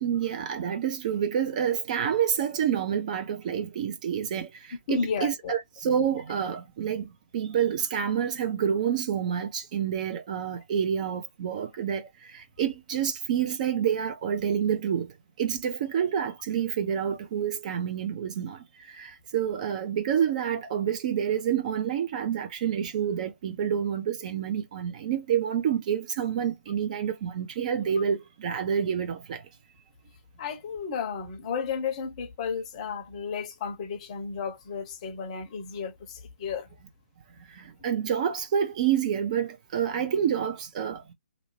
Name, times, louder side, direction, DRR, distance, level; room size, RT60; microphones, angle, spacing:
voice 1, 0.0-4.5 4.9-7.1 7.3-12.1 12.3-15.1 15.4-18.6 18.9-29.4 37.6-41.1, right 8 dB, 35° right, 0.5 m, -28 dB
voice 2, 4.9-5.5 30.4-36.7, left 6 dB, 30° left, 0.7 m, -33 dB
2.5 x 2.0 x 3.0 m
figure-of-eight pair, 145°, 7 cm